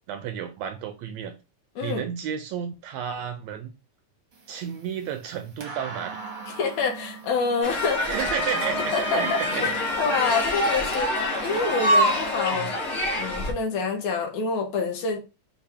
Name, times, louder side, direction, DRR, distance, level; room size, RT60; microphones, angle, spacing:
voice 1, 0.1-1.3 1.8-3.7 4.5-6.2 8.0-9.7 12.5-12.7, right 8 dB, 80° right, 1.6 m, -32 dB
sound 1, 4.3-12.3, right 5 dB, 55° right, 0.9 m, -40 dB
voice 2, 6.5-8.2 8.9-9.7 10.0-15.2, left 4 dB, 70° left, 2.2 m, -27 dB
sound 2, 7.6-13.5, left 1 dB, 55° left, 0.6 m, -25 dB
6.0 x 2.4 x 3.4 m
omnidirectional pair, 3.3 m